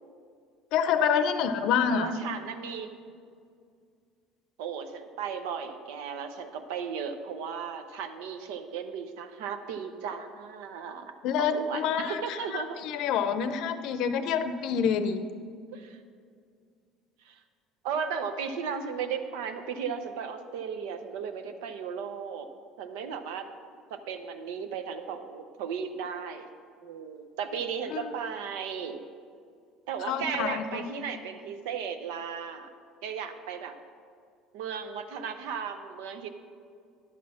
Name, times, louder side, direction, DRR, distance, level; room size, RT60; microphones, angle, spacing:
voice 1, 0.7-2.1 11.2-12.4 12.8-15.2 27.9-28.0 30.1-30.8, left 7 dB, 70° left, 10 dB, 0.6 m, -27 dB
voice 2, 1.9-2.9 4.6-11.1 11.4-12.8 15.7-16.0 17.2-17.4 17.8-22.5 22.8-23.5 23.9-26.5 26.8-29.0 29.9-32.7 33.0-33.8 34.5-36.3, right 6 dB, 85° right, 8 dB, 0.7 m, -35 dB
10.5 x 4.2 x 6.3 m, 2.2 s
supercardioid pair, 105°, 0 cm